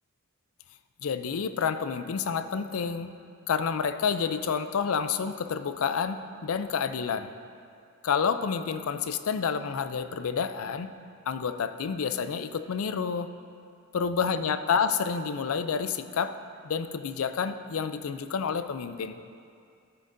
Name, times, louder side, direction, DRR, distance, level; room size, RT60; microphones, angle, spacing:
voice 1, 1.0-3.1 3.5-7.3 8.0-10.9 11.3-13.3 13.9-16.4 16.6-19.2, left 6 dB, 75° left, 11 dB, 0.4 m, -29 dB
13.5 x 9.4 x 2.6 m, 2.4 s
head